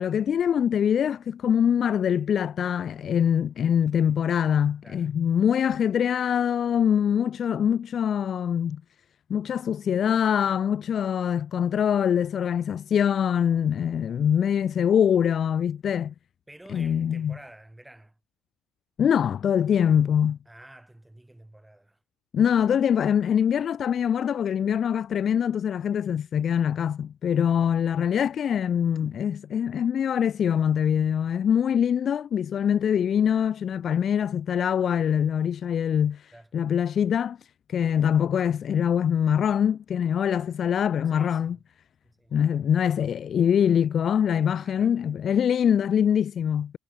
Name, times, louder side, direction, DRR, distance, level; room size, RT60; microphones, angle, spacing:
voice 1, 0.0-8.8 9.3-16.1 16.7-17.4 19.0-20.4 22.3-37.4 37.7-41.6 42.3-46.8, left 8 dB, 45° left, 0.3 m, -24 dB
voice 2, 16.5-18.2 20.4-22.0 27.6-27.8 36.3-36.5 41.1-41.6 42.0-42.4 43.6-43.7 44.4-45.0, right 1 dB, 5° right, 1.6 m, -50 dB
cardioid pair, 115°, 0 cm